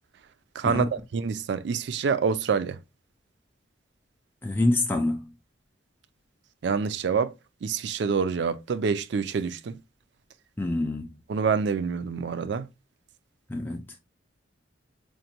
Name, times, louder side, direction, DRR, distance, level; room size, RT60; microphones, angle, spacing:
voice 1, 0.6-2.8 6.6-7.3 7.6-9.8 11.3-12.7, right 5 dB, 65° right, 0.3 m, -27 dB
voice 2, 4.4-5.3 10.6-11.2 13.5-13.9, left 2 dB, 10° left, 0.3 m, -26 dB
5.1 x 2.2 x 2.8 m
head